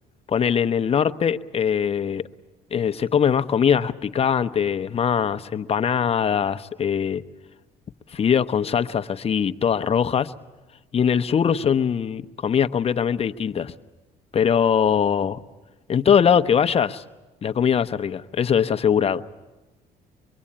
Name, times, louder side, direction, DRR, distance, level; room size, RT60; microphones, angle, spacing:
voice 1, 0.3-2.3 2.7-7.2 8.1-10.3 10.9-13.7 14.3-15.4 15.9-17.0 17.4-19.2, left 7 dB, 35° left, 10 dB, 0.9 m, -21 dB
25.5 x 22.5 x 8.7 m, 1.1 s
cardioid pair, 110°, 17 cm